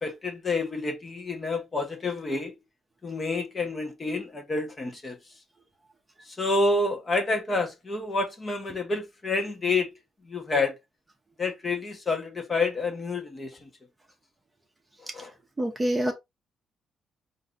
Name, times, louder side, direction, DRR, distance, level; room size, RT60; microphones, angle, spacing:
voice 1, 0.0-2.5 3.0-5.2 6.3-9.9 10.2-10.8 11.4-13.7 15.1-15.3, left 3 dB, 25° left, 1.0 m, -28 dB
voice 2, 15.6-16.1, right 1 dB, 15° right, 0.8 m, -25 dB
4.6 x 2.7 x 3.8 m
cardioid pair, 150°, 0 cm